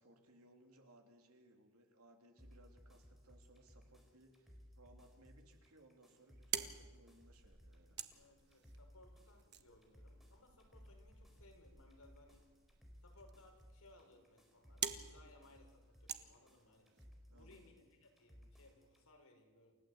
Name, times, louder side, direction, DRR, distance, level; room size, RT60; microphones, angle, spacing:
voice 1, 0.0-8.0 17.3-17.7, right 1 dB, 70° right, 3 dB, 3.6 m, -65 dB
sound 1, 2.4-19.0, equal, ahead, 4.5 m, -62 dB
sound 2, 6.1-17.1, right 9 dB, 50° right, 1.4 m, -49 dB
voice 2, 8.1-12.4 13.0-16.9 17.3-19.8, left 2 dB, 75° left, 2 dB, 6.2 m, -65 dB
29.0 x 16.0 x 8.3 m, 1.4 s
head